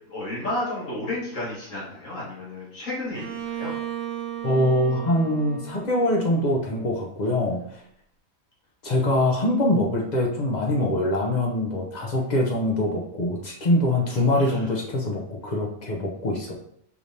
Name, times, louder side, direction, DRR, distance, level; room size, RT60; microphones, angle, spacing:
voice 1, 0.1-3.7 14.3-14.7, left 1 dB, 70° left, -6 dB, 2.1 m, -32 dB
Bowed string instrument, 3.1-6.9, right 10 dB, 65° right, 0.8 m, -35 dB
voice 2, 4.4-7.6 8.8-16.5, left 1 dB, 40° left, -1 dB, 0.7 m, -23 dB
5.0 x 3.3 x 2.7 m, 0.69 s
omnidirectional pair, 1.4 m